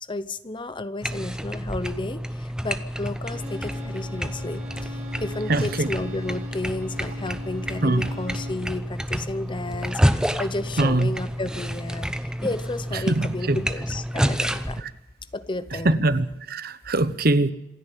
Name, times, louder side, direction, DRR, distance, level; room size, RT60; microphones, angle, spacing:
voice 1, 0.0-14.9 15.3-16.0, left 2 dB, 25° left, 0.8 m, -32 dB
sound 1, 1.0-14.8, equal, 5° right, 0.8 m, -29 dB
Bowed string instrument, 3.3-8.7, left 3 dB, 40° right, 6.2 m, -41 dB
voice 2, 5.5-5.9 7.8-8.1 10.8-11.1 13.1-13.6 15.8-17.5, right 2 dB, 55° right, 1.0 m, -22 dB
27.0 x 10.0 x 9.9 m
head